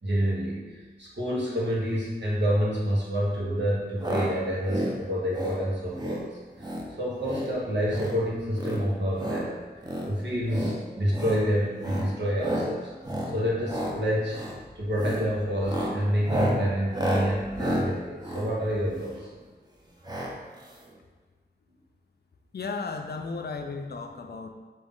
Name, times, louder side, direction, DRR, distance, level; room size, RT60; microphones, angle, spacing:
voice 1, 0.0-6.3 6.6-6.7 7.0-9.6 10.1-12.9 13.3-14.4 14.7-19.3, equal, 85° right, -5 dB, 1.2 m, -28 dB
sound 1, 4.0-4.3 4.6-4.9 5.3-5.6 5.9-6.2 6.6-6.9 7.2-7.5 7.8-8.2 8.5-9.4 9.8-10.1 10.5-10.7 11.1-11.4 11.8-12.1 12.4-12.7 13.0-13.3 13.6-13.9 14.3-14.6 14.9-15.2 15.6-19.3 20.0-20.3 20.6-20.7 20.9-21.0, equal, 25° right, 0.8 m, -31 dB
voice 2, 22.5-24.5, left 4 dB, 65° left, 5 dB, 0.4 m, -34 dB
5.2 x 2.7 x 3.6 m, 1.3 s
wide cardioid pair, 65°, 18 cm